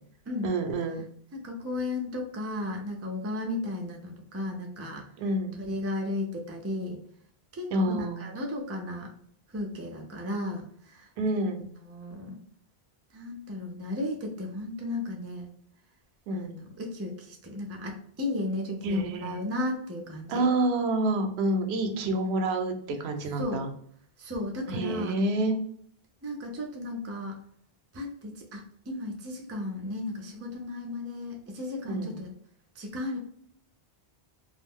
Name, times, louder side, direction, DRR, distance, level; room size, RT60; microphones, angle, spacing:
voice 1, 0.4-1.0 5.2-5.6 7.7-8.2 11.2-11.6 16.3-16.6 18.8-19.4 20.3-23.7 24.7-25.6 31.9-32.2, right 2 dB, 85° right, 5 dB, 0.8 m, -28 dB
voice 2, 1.3-5.1 5.6-7.0 7.5-9.1 9.5-11.1 11.8-12.4 13.1-15.5 16.3-20.5 21.9-22.2 23.4-23.6 24.2-25.2 26.2-27.4 27.9-32.3 32.8-33.2, left 2 dB, 25° right, 1 dB, 0.3 m, -34 dB
2.3 x 2.0 x 3.5 m, 0.62 s
omnidirectional pair, 1.0 m